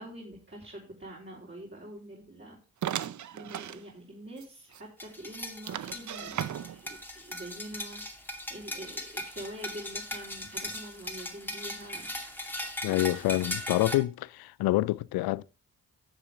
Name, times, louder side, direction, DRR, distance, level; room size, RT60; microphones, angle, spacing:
voice 1, 0.0-2.6 3.0-12.1, right 1 dB, 30° right, 3.9 m, -45 dB
sound 1, 2.8-3.8 4.4-4.5 4.7-4.8 5.7-6.9, right 10 dB, 50° right, 0.6 m, -35 dB
sound 2, 5.0-14.0, left 1 dB, 5° left, 2.3 m, -39 dB
voice 2, 12.8-15.4, left 17 dB, 80° left, 0.5 m, -27 dB
11.0 x 7.1 x 3.5 m
supercardioid pair, 50°, 37 cm